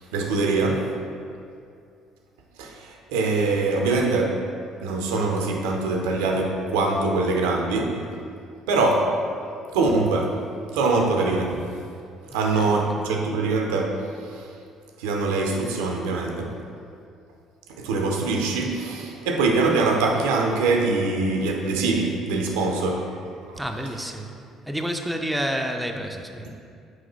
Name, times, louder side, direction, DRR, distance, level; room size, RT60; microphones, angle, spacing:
voice 1, 0.1-0.9 2.6-4.4 4.8-8.1 8.7-9.1 9.7-10.4 10.7-11.6 12.3-14.1 15.0-16.5 17.8-23.2 23.5-23.6, right 3 dB, 80° right, 1 dB, 0.4 m, -23 dB
voice 2, 12.5-13.1 23.6-24.3 24.7-26.5, equal, 5° right, 3 dB, 0.4 m, -30 dB
4.5 x 3.9 x 3.0 m, 2.4 s
hypercardioid pair, 55°, 0 cm